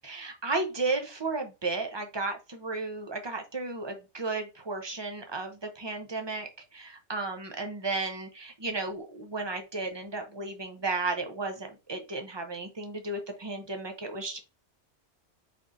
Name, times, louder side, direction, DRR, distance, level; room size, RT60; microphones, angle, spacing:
voice 1, 0.0-14.4, right 3 dB, 30° right, 4 dB, 0.5 m, -34 dB
4.4 x 3.7 x 2.5 m, 0.28 s
omnidirectional pair, 1.3 m